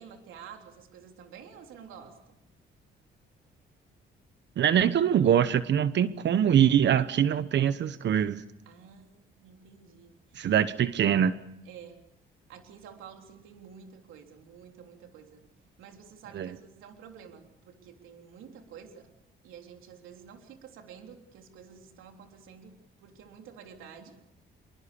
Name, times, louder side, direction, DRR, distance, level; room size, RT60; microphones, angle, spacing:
voice 1, 0.0-2.4 8.7-10.6 11.6-12.0 12.5-15.4 15.8-19.1 19.4-24.2, right 7 dB, 90° right, 3.6 m, -50 dB
voice 2, 4.6-8.4 10.4-11.4 16.3-16.5, right 9 dB, 65° right, 1.1 m, -23 dB
26.0 x 24.0 x 7.0 m
cardioid pair, 90°, 20 cm